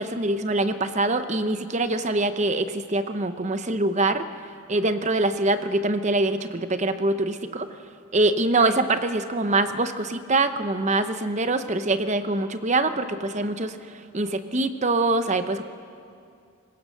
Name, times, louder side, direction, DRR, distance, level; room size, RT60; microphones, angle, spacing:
voice 1, 0.0-4.2 4.7-7.7 8.1-13.8 14.1-15.6, right 2 dB, 30° right, 10 dB, 0.7 m, -24 dB
23.5 x 21.0 x 6.5 m, 2.4 s
head